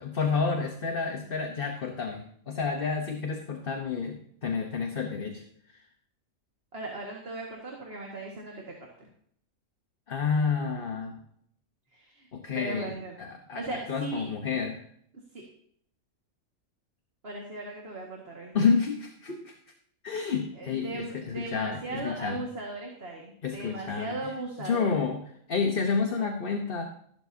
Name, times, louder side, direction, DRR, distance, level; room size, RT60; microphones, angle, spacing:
voice 1, 0.0-5.4 5.7-5.8 10.1-11.2 12.3-14.9 18.5-19.6 20.0-22.4 23.4-24.2 24.6-26.9, left 5 dB, 45° left, 3 dB, 1.2 m, -30 dB
voice 2, 6.7-8.6 9.0-9.1 11.9-12.3 12.5-13.2 13.5-14.3 15.3-15.4 17.2-18.7 20.6-25.1 26.1-26.4, right 2 dB, 45° right, -1 dB, 2.1 m, -38 dB
14.5 x 12.0 x 2.8 m, 0.66 s
omnidirectional pair, 1.4 m